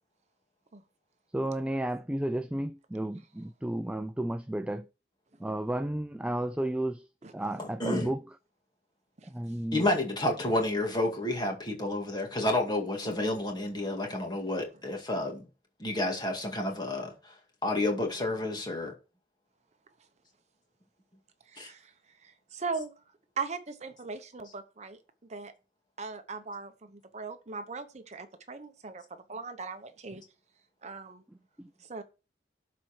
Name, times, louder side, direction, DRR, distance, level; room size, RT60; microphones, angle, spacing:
voice 1, 1.3-4.9 5.4-7.0 7.3-8.2 9.3-9.9 31.6-31.7, right 1 dB, 5° right, 0.3 m, -32 dB
voice 2, 7.6-8.1 9.7-15.5 15.8-17.3 17.6-18.9 21.6-21.7, left 1 dB, 25° left, 2.2 m, -30 dB
voice 3, 13.0-13.4 21.5-21.9 22.2-22.9 23.4-25.0 25.3-25.5 26.0-30.2 30.8-31.2 31.8-32.0, right 4 dB, 40° right, 0.8 m, -39 dB
12.0 x 4.4 x 4.4 m
head